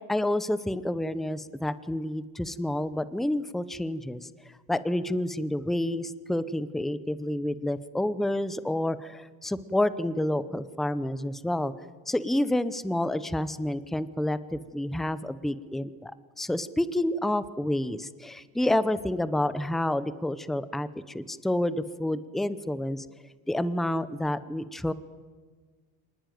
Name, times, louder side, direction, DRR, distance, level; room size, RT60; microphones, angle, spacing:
voice 1, 0.1-4.3 4.7-11.7 12.1-23.1 23.5-24.9, left 1 dB, ahead, 15 dB, 0.7 m, -29 dB
25.5 x 20.0 x 9.3 m, 1.4 s
cardioid pair, 145°, 38 cm